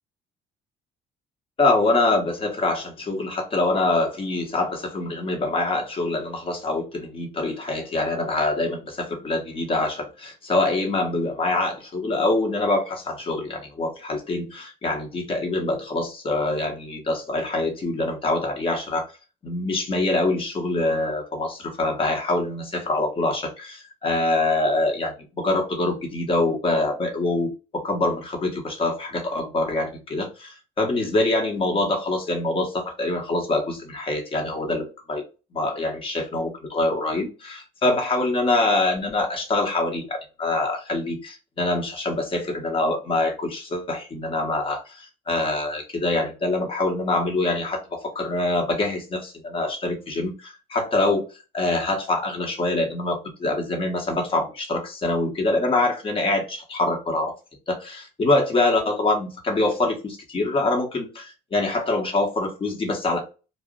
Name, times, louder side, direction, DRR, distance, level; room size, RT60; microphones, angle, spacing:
voice 1, 1.6-19.1 19.4-35.2 35.5-51.2 51.5-57.3 57.7-63.2, left 2 dB, 30° left, 1.1 m, -25 dB
2.4 x 2.0 x 3.7 m
cardioid pair, 110°, 17 cm